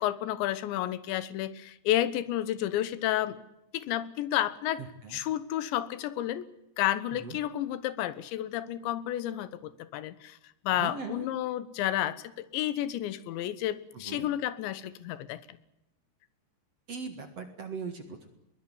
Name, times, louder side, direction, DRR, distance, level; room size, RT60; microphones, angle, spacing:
voice 1, 0.0-3.4 3.7-4.8 5.1-6.5 6.8-10.4 10.6-15.4, left 13 dB, 85° left, 16 dB, 3.4 m, -31 dB
voice 2, 4.8-5.2 7.2-7.4 10.7-11.3 13.9-14.3 16.9-18.3, right 5 dB, 50° right, 8 dB, 2.2 m, -39 dB
21.5 x 19.5 x 9.8 m, 0.87 s
omnidirectional pair, 5.0 m